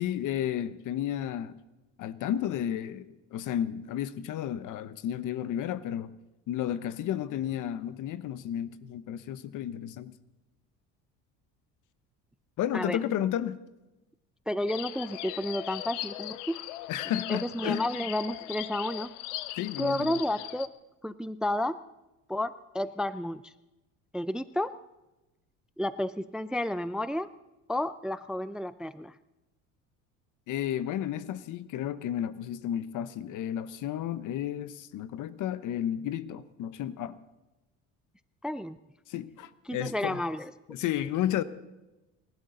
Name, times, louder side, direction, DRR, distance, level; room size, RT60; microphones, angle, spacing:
voice 1, 0.0-1.6 2.0-6.1 6.5-10.1 12.6-13.6 16.9-17.8 19.6-20.2 30.5-37.2 39.1-40.2 40.7-41.4, left 11 dB, 60° left, 15 dB, 1.1 m, -32 dB
voice 2, 14.5-16.6 17.3-19.1 19.8-20.7 21.0-21.8 22.3-23.5 24.1-24.8 25.8-27.3 27.7-29.1 38.4-38.8 39.7-40.5, left 1 dB, ahead, 15 dB, 0.4 m, -31 dB
sound 1, 14.7-20.7, left 15 dB, 85° left, 0.8 m, -39 dB
29.0 x 12.0 x 4.0 m, 1.0 s
supercardioid pair, 85°, 35 cm